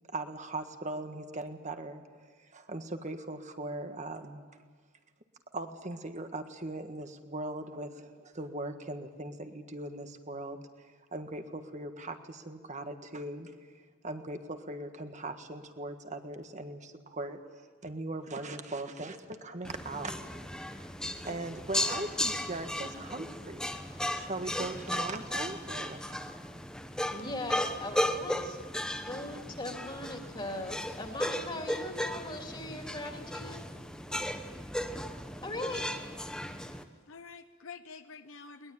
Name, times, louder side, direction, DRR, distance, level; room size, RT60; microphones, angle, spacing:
voice 1, 0.1-2.0 2.4-4.4 5.5-20.2 21.2-23.7 24.1-26.2, right 2 dB, 35° right, 7 dB, 1.6 m, -40 dB
sound 1, 19.6-36.8, left 1 dB, 5° left, 1.0 m, -36 dB
voice 2, 27.1-28.6 29.1-33.6 35.4-35.9, left 2 dB, 20° left, 3 dB, 2.8 m, -40 dB
voice 3, 34.1-34.6 37.1-38.7, left 5 dB, 65° left, 9 dB, 0.8 m, -49 dB
22.0 x 20.5 x 9.1 m, 1.5 s
head